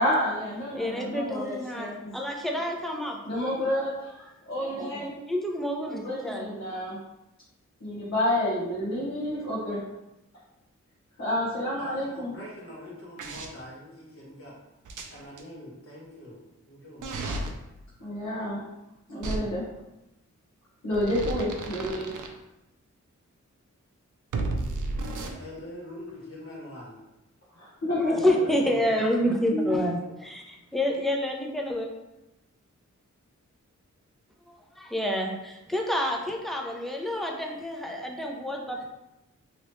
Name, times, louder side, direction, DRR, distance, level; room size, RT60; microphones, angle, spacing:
voice 1, 0.0-2.1 3.3-4.2 4.5-5.2 5.9-7.0 7.8-9.8 11.2-12.3 18.0-18.6 19.1-19.6 20.8-22.1 27.6-28.3 29.5-29.9, left 1 dB, 60° left, -10 dB, 1.1 m, -29 dB
voice 2, 0.7-3.2 4.6-6.5 28.1-31.9 34.8-38.9, left 1 dB, ahead, 0 dB, 0.5 m, -29 dB
voice 3, 11.8-14.6 15.1-17.4 25.1-27.0 28.2-29.0, left 1 dB, 45° left, -5 dB, 1.3 m, -43 dB
sound 1, 13.2-13.5 14.8-15.4 17.0-17.5 19.2-19.4 20.9-22.3 24.3-25.3, right 2 dB, 85° right, 0.5 m, -32 dB
3.0 x 3.0 x 3.0 m, 0.95 s
wide cardioid pair, 80°, 30 cm